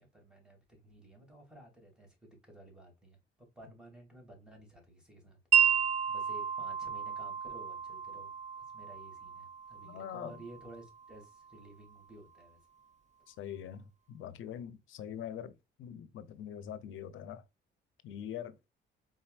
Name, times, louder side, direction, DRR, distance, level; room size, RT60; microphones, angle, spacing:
voice 1, 0.0-12.6, right 1 dB, 5° right, 2.6 m, -54 dB
Wind chime, 5.5-11.6, right 8 dB, 35° right, 0.5 m, -32 dB
voice 2, 9.8-10.4 13.3-17.4 18.0-18.6, left 9 dB, 80° left, 0.7 m, -43 dB
4.4 x 3.9 x 2.4 m
cardioid pair, 90°, 20 cm